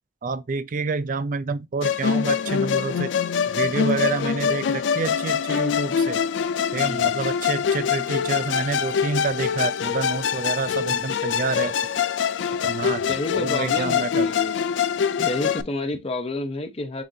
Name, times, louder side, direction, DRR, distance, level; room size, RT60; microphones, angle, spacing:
voice 1, 0.2-3.1 3.5-6.2 6.7-11.7 12.6-13.0 13.3-14.3, right 4 dB, 45° right, 0.4 m, -28 dB
Musical instrument, 1.8-15.6, left 7 dB, 80° left, 0.4 m, -24 dB
voice 2, 6.7-7.3 13.1-14.6 15.2-17.0, left 2 dB, 35° left, 0.6 m, -30 dB
7.2 x 2.4 x 2.7 m
head